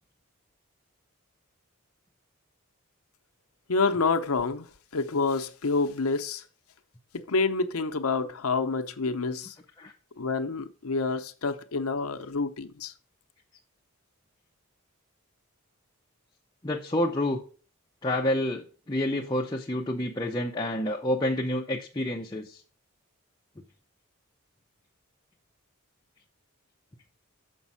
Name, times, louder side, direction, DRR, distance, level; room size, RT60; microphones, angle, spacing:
voice 1, 3.7-4.7 4.9-6.4 7.1-9.5 10.2-12.9, left 4 dB, 85° left, 0.8 m, -28 dB
voice 2, 16.6-17.4 18.0-22.6, left 1 dB, 20° left, 0.6 m, -28 dB
7.2 x 5.3 x 5.4 m
head